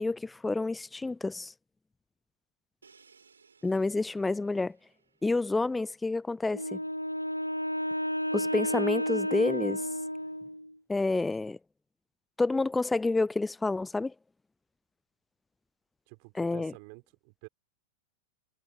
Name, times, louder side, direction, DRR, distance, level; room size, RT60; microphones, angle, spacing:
voice 1, 0.0-1.5 3.6-4.8 5.2-6.8 8.3-9.8 10.9-11.6 12.4-14.1 16.4-16.7, left 3 dB, 10° left, 0.5 m, -29 dB
Crash cymbal, 2.8-6.6, right 5 dB, 75° right, 4.7 m, -64 dB
Wind instrument woodwind instrument, 6.5-10.7, equal, 90° left, 0.4 m, -32 dB
voice 2, 16.1-17.5, right 40 dB or more, 45° right, 3.9 m, -50 dB
figure-of-eight pair, 90°, 0 cm